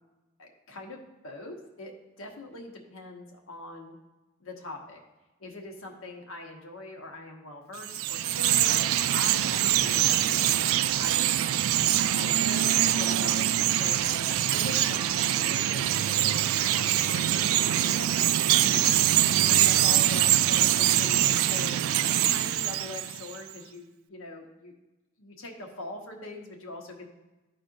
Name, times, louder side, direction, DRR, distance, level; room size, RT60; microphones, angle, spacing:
voice 1, 0.4-1.0 1.2-1.9 2.2-3.9 4.4-5.0 5.4-11.3 11.9-19.0 19.4-21.7 22.0-24.7 25.2-27.1, left 2 dB, 85° left, 1 dB, 1.2 m, -42 dB
Chirp tweet, 7.8-23.4, right 12 dB, 80° right, 0.3 m, -24 dB
13.0 x 4.4 x 2.6 m, 1.1 s
head